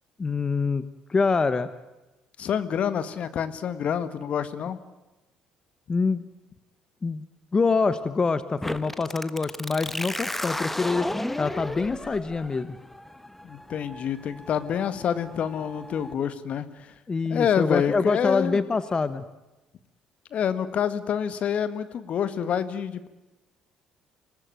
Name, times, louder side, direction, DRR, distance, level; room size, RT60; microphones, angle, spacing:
voice 1, 0.2-1.7 5.9-6.2 7.0-7.2 7.5-11.1 11.4-12.8 17.1-19.2, left 4 dB, 30° left, 13 dB, 1.2 m, -25 dB
voice 2, 2.4-4.8 13.4-16.7 17.3-18.6 20.3-23.1, left 8 dB, 55° left, 12 dB, 1.7 m, -27 dB
sound 1, 8.6-16.1, left 1 dB, 10° left, 1.3 m, -35 dB
25.5 x 19.5 x 9.2 m, 1.1 s
hypercardioid pair, 55°, 3 cm